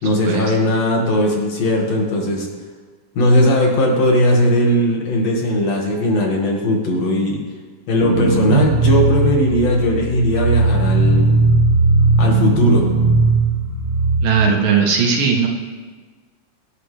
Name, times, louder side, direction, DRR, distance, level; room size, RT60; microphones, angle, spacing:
voice 1, 0.0-2.5 3.2-7.4 7.9-11.3 12.2-12.9, left 1 dB, 55° left, -1 dB, 2.9 m, -18 dB
sound 1, 8.0-14.2, right 3 dB, 40° right, 1.2 m, -17 dB
voice 2, 14.2-15.5, right 6 dB, 80° right, 0 dB, 3.3 m, -17 dB
23.5 x 11.0 x 3.3 m, 1.4 s
omnidirectional pair, 3.8 m